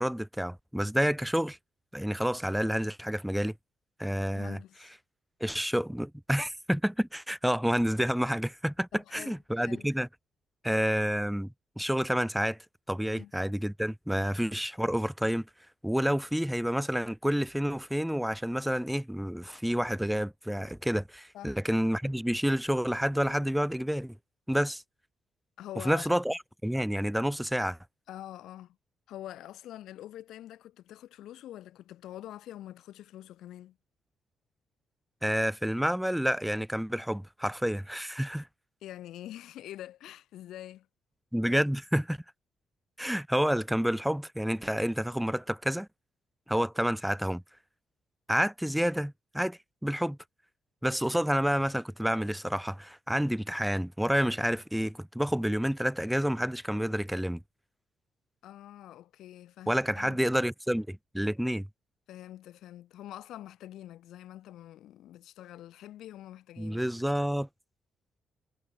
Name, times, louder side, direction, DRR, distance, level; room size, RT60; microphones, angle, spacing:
voice 1, 0.0-1.6 1.9-3.5 4.0-4.6 5.4-10.1 10.6-12.6 12.9-15.5 15.8-24.2 24.5-24.8 25.9-27.8 35.2-38.5 41.3-42.2 43.0-45.9 46.5-47.4 48.3-50.2 50.8-57.4 59.7-61.7 66.6-67.5, equal, 5° right, 0.3 m, -29 dB
voice 2, 4.3-4.9 8.9-9.8 13.1-13.3 14.2-14.3 21.3-21.6 25.6-26.1 28.1-28.8 29.1-33.8 38.8-40.9 58.4-60.2 62.1-66.8, left 13 dB, 80° left, 0.8 m, -45 dB
cardioid pair, 90°, 0 cm